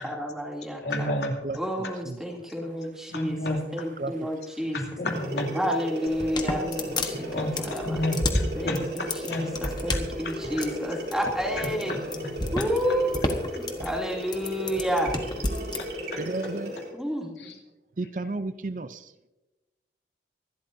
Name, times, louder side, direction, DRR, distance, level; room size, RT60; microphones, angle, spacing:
voice 1, 0.0-1.1 1.5-4.8 5.5-8.0 8.5-12.0 12.5-15.1 16.9-17.5, equal, 5° right, -1 dB, 2.8 m, -30 dB
voice 2, 0.8-1.3 3.1-3.6 4.7-5.5 6.8-9.5 9.9-10.3 11.6-12.3 15.8-16.2 17.4-17.5, left 1 dB, 75° left, 2 dB, 2.7 m, -31 dB
voice 3, 1.4-2.2 4.0-4.3 16.2-16.7 18.0-19.3, right 2 dB, 45° right, 12 dB, 0.5 m, -33 dB
sound 1, 5.1-16.9, equal, 80° right, 4.3 m, -36 dB
sound 2, 6.1-15.8, left 2 dB, 25° left, 1.2 m, -31 dB
25.5 x 12.5 x 2.7 m, 1.0 s
head